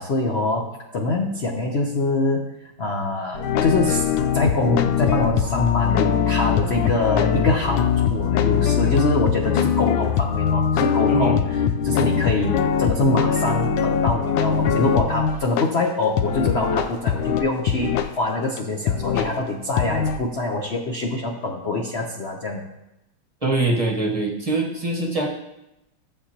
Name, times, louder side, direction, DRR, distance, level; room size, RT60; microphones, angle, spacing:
voice 1, 0.0-4.1 4.3-22.6, left 2 dB, 50° left, 0 dB, 0.8 m, -24 dB
sound 1, 3.3-15.6 16.2-18.1 18.6-18.7 18.9-19.4 19.8-20.2, left 7 dB, 75° left, 1.3 m, -22 dB
voice 2, 11.1-11.4 23.4-25.3, right 2 dB, 20° right, -2 dB, 1.1 m, -23 dB
14.5 x 7.8 x 2.9 m, 0.90 s
omnidirectional pair, 2.3 m